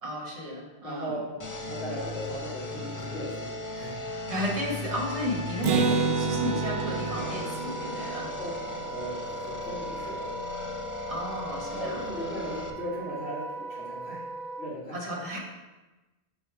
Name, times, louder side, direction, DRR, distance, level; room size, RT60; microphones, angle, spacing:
voice 1, 0.0-1.2 4.3-8.4 11.1-12.0 14.9-15.4, left 1 dB, 35° right, -2 dB, 1.2 m, -33 dB
voice 2, 0.8-1.2 1.6-4.0 8.4-8.5 8.8-10.3 11.7-14.2 14.6-15.0, equal, 90° left, -11 dB, 2.2 m, -37 dB
sound 1, 1.4-12.7, left 3 dB, 30° left, 0.3 m, -37 dB
Acoustic guitar, 5.6-9.3, right 5 dB, 75° right, 0.9 m, -29 dB
Wind instrument woodwind instrument, 5.7-14.7, right 4 dB, 50° right, 0.5 m, -39 dB
7.2 x 3.3 x 4.6 m, 1.1 s
omnidirectional pair, 1.1 m